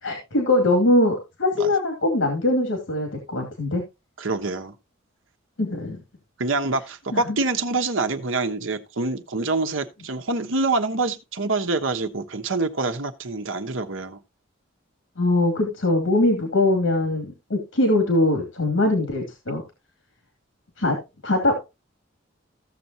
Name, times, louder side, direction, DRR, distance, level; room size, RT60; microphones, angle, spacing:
voice 1, 0.0-3.8 5.6-6.0 7.1-7.4 15.2-19.6 20.8-21.0 21.2-21.6, left 2 dB, 85° left, 2.6 m, -22 dB
voice 2, 4.2-4.7 6.4-14.2, right 3 dB, 75° right, 1.1 m, -26 dB
15.5 x 6.9 x 2.9 m
head